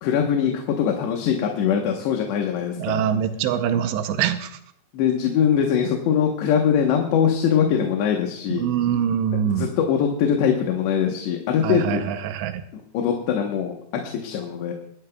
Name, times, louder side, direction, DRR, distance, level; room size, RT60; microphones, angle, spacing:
voice 1, 0.0-3.0 4.9-8.7 9.5-12.0 12.7-14.7, left 8 dB, 80° left, 2 dB, 3.3 m, -22 dB
voice 2, 2.8-4.6 8.5-9.7 11.6-12.6, right 9 dB, 85° right, 8 dB, 3.0 m, -24 dB
22.5 x 11.5 x 2.3 m, 0.68 s
omnidirectional pair, 4.9 m